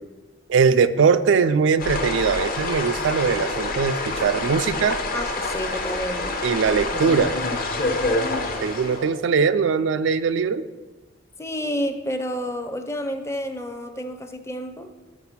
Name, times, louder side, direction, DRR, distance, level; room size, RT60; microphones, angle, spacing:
voice 1, 0.5-5.0 6.4-7.4 8.6-10.6, right 5 dB, 70° right, 12 dB, 0.4 m, -21 dB
sound 1, 1.8-9.1, left 2 dB, 50° left, 0.9 m, -27 dB
voice 2, 5.1-6.4 11.4-14.9, equal, 15° left, 8 dB, 0.6 m, -30 dB
6.2 x 6.0 x 5.8 m, 1.2 s
head